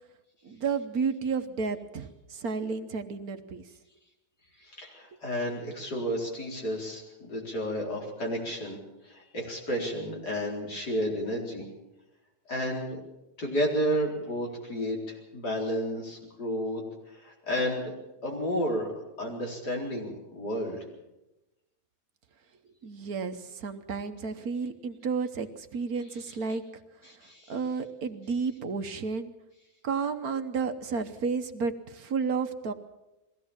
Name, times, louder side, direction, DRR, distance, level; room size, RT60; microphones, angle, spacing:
voice 1, 0.4-3.6 22.8-26.6 27.5-29.3 29.8-32.7, right 5 dB, 60° right, 8 dB, 1.4 m, -32 dB
voice 2, 4.6-8.8 9.0-11.6 12.5-13.0 13.4-17.9 18.2-18.9 19.2-20.8 27.0-27.6, equal, 70° left, -1 dB, 4.9 m, -32 dB
21.5 x 16.5 x 7.3 m, 0.97 s
omnidirectional pair, 1.8 m